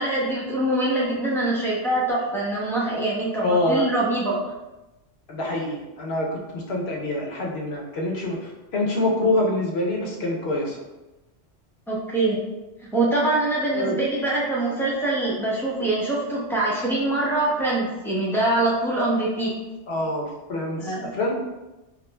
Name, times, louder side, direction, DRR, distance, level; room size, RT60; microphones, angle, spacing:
voice 1, 0.0-4.4 11.9-12.4 12.9-19.5 20.8-21.1, right 2 dB, 5° left, -5 dB, 0.4 m, -24 dB
voice 2, 3.4-3.9 5.3-10.8 13.7-14.0 19.9-21.3, left 1 dB, 65° left, -2 dB, 0.9 m, -25 dB
4.7 x 2.0 x 2.2 m, 1.0 s
omnidirectional pair, 1.2 m